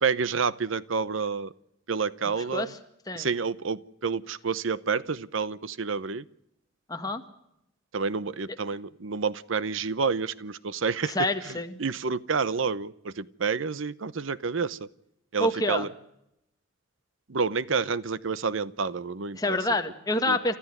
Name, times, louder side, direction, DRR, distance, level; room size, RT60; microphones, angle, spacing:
voice 1, 0.0-1.5 1.9-2.7 3.1-6.2 7.9-11.2 11.8-14.8 15.3-15.9 17.3-19.6 20.3-20.4, right 5 dB, 75° right, 18 dB, 0.8 m, -29 dB
voice 2, 2.4-2.8 3.1-3.3 6.9-7.2 11.1-11.8 15.4-15.9 19.3-20.6, left 1 dB, 20° left, 6 dB, 1.7 m, -27 dB
30.0 x 14.0 x 9.2 m, 0.82 s
head